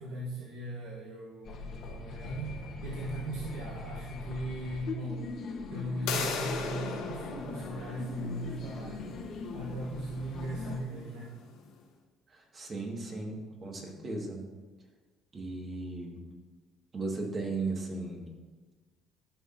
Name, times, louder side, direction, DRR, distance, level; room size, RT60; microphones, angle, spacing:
voice 1, 0.0-5.4 5.7-9.1 9.5-11.3, right 1 dB, 85° right, -3 dB, 1.1 m, -38 dB
sound 1, 1.4-10.8, left 4 dB, 55° left, 1.0 m, -41 dB
sound 2, 6.1-11.7, left 5 dB, 85° left, 1.2 m, -39 dB
voice 2, 12.3-14.4 15.3-16.3 16.9-18.2, right 3 dB, 35° right, 1 dB, 1.8 m, -36 dB
12.5 x 5.9 x 2.7 m, 1.3 s
cardioid pair, 100°, 0 cm